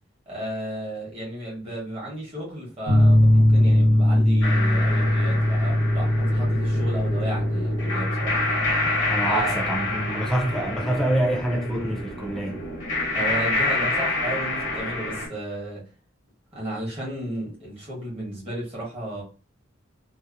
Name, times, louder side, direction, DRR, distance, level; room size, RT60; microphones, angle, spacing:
voice 1, 0.3-8.4 9.3-9.5 13.1-15.8 16.5-19.2, right 1 dB, 30° right, 1.0 m, -33 dB
sound 1, 2.9-10.5, left 1 dB, 80° right, 0.8 m, -21 dB
sound 2, 4.4-15.3, left 2 dB, 70° left, 0.8 m, -28 dB
voice 2, 9.1-12.7, right 1 dB, ahead, 0.4 m, -26 dB
2.7 x 2.0 x 2.3 m
head